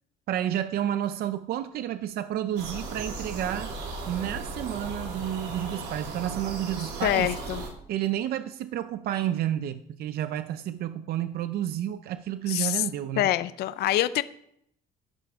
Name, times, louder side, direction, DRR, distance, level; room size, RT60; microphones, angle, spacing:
voice 1, 0.3-3.7 4.1-7.3 7.9-13.3, right 11 dB, 65° right, 11 dB, 0.6 m, -30 dB
sound 1, 2.6-7.7, right 3 dB, 85° right, 3.1 m, -36 dB
voice 2, 7.0-7.6 12.5-12.8 13.2-14.2, left 14 dB, 70° left, 14 dB, 0.5 m, -25 dB
14.0 x 11.5 x 3.6 m, 0.73 s
cardioid pair, 110°, 17 cm